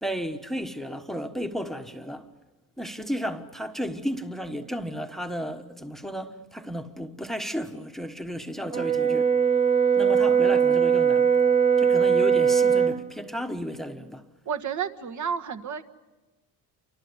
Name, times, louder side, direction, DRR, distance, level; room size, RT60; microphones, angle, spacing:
voice 1, 0.0-2.3 2.8-9.3 9.9-11.3 11.8-14.2, equal, ahead, 1.3 m, -33 dB
Brass instrument, 8.7-13.0, right 7 dB, 20° right, 1.5 m, -20 dB
voice 2, 14.4-15.8, right 7 dB, 45° right, 1.6 m, -31 dB
29.0 x 25.5 x 8.1 m
cardioid pair, 125°, 41 cm